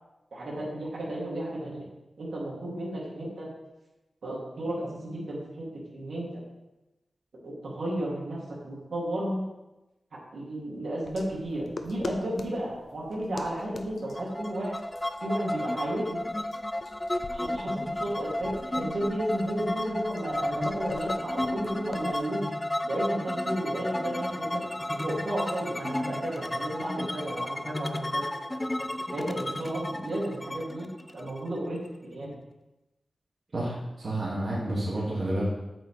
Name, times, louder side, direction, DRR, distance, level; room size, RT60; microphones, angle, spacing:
voice 1, 0.3-1.8 2.2-3.5 4.2-5.7 5.9-6.3 7.4-8.4 8.6-9.4 10.3-14.8 15.2-16.2 17.3-22.5 22.8-24.6 24.9-28.3 29.1-32.3, right 1 dB, 80° right, -6 dB, 2.8 m, -33 dB
sound 1, 11.0-22.2, left 3 dB, 55° left, 0.6 m, -44 dB
sound 2, 14.2-31.9, left 1 dB, 15° left, 0.4 m, -33 dB
voice 2, 33.5-35.4, right 1 dB, 55° right, -8 dB, 2.4 m, -30 dB
8.5 x 6.5 x 3.4 m, 0.98 s
wide cardioid pair, 105°, 0 cm